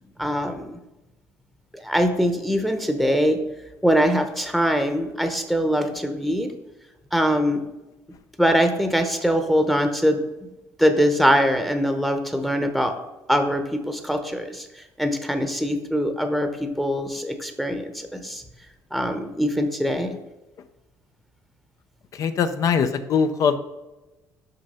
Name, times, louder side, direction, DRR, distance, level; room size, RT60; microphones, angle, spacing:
voice 1, 0.2-0.8 1.7-3.4 3.8-6.5 7.1-7.6 8.4-10.5 10.8-12.9 13.3-14.7 15.0-18.4 18.9-20.2, equal, ahead, 6 dB, 0.9 m, -22 dB
voice 2, 22.2-23.6, left 6 dB, 55° left, 10 dB, 0.6 m, -21 dB
6.5 x 5.6 x 5.5 m, 1.0 s
cardioid pair, 115°, 7 cm